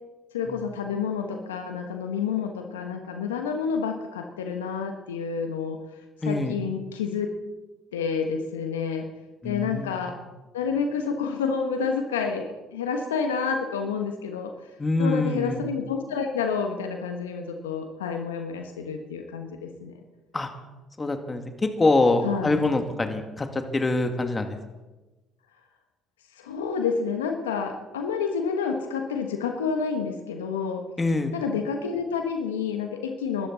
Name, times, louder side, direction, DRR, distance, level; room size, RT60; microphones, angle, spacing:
voice 1, 0.3-5.8 6.2-7.3 7.9-9.1 9.4-10.1 10.5-14.5 15.0-19.9 22.2-22.6 26.4-30.8 31.3-33.5, left 6 dB, 90° left, 5 dB, 1.2 m, -29 dB
voice 2, 6.2-6.6 9.4-10.1 14.8-15.6 20.3-20.5 21.0-24.6 31.0-31.3, left 2 dB, 25° left, 6 dB, 2.2 m, -25 dB
23.0 x 13.0 x 4.1 m, 1.1 s
hypercardioid pair, 55°, 0 cm